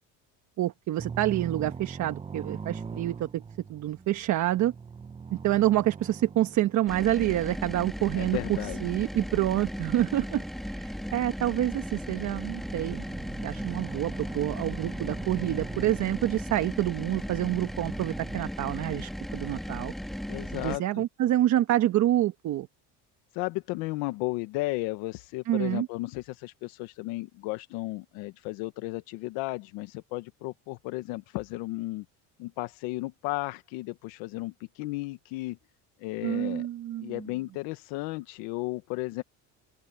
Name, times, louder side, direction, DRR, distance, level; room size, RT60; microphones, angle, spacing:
voice 1, 0.6-3.4 3.7-4.7 5.3-10.4 10.7-13.1 13.4-19.9 20.5-22.7 25.5-25.9 36.2-37.3, right 14 dB, 50° right, 1.2 m, -27 dB
sound 1, 1.0-18.4, right 5 dB, 15° right, 0.7 m, -43 dB
sound 2, 6.9-20.8, equal, ahead, 1.9 m, -36 dB
voice 2, 8.1-8.8 20.3-20.8 23.3-32.0 32.4-35.6 36.0-36.7 37.0-39.2, left 20 dB, 85° left, 1.2 m, -34 dB
open air
cardioid pair, 125°, 36 cm